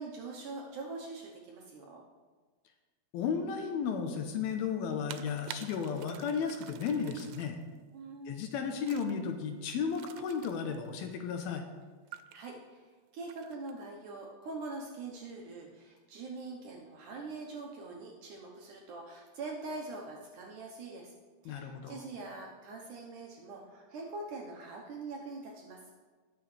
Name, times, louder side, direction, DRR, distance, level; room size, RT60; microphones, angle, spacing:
voice 1, 0.0-2.0 7.9-8.4 12.3-21.1 21.4-25.8, right 3 dB, 70° right, -1 dB, 2.0 m, -43 dB
voice 2, 3.1-7.6 8.3-11.6 21.5-22.0, left 6 dB, 75° left, 5 dB, 2.5 m, -34 dB
sound 1, 5.1-7.6 8.9-9.1 9.9-10.9 12.1-12.4 13.2-13.7, right 12 dB, 90° right, 2.7 m, -48 dB
20.0 x 6.9 x 3.3 m, 1.4 s
omnidirectional pair, 4.6 m